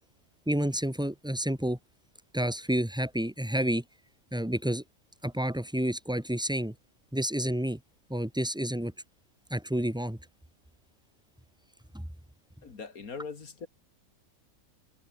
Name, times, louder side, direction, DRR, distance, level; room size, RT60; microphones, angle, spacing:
voice 1, 0.5-1.8 2.3-3.8 4.3-4.8 5.2-6.7 7.1-7.8 8.1-8.9 9.5-10.2 11.9-12.1, right 1 dB, 5° right, 2.3 m, -29 dB
voice 2, 12.6-13.7, left 5 dB, 80° left, 2.7 m, -41 dB
omnidirectional pair, 1.5 m